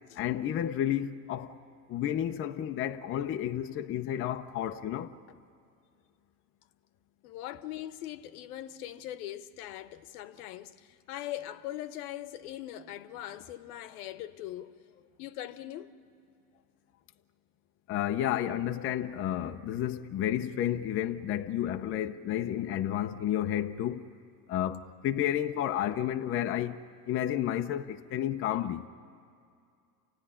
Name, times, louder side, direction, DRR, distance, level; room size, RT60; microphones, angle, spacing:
voice 1, 0.2-1.6 1.9-5.1 17.9-24.1 24.5-28.9, left 11 dB, 25° left, 0.7 m, -31 dB
voice 2, 7.2-15.9, left 13 dB, 65° left, 1.2 m, -41 dB
28.5 x 16.0 x 9.9 m
supercardioid pair, 120°, 48 cm